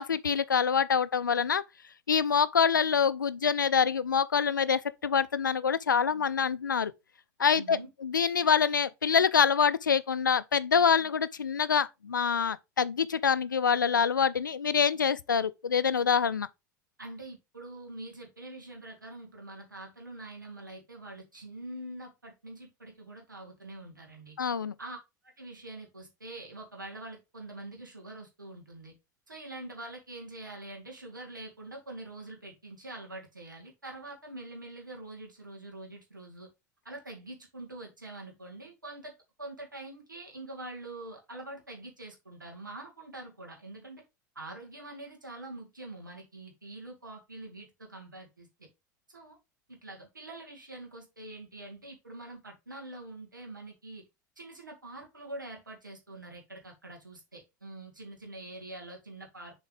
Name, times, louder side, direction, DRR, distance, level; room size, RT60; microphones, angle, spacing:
voice 1, 0.0-1.6 2.1-6.9 7.4-16.5 24.4-24.7, left 6 dB, 80° left, 0.4 m, -26 dB
voice 2, 7.5-7.9 17.0-24.4 24.8-25.0 25.2-28.9 29.3-36.5 36.8-39.1 39.4-44.0 44.4-48.7 49.1-49.4 49.7-54.1 54.4-59.5, right 2 dB, 85° right, 2.0 m, -45 dB
7.1 x 4.0 x 3.4 m
figure-of-eight pair, 80°, 10 cm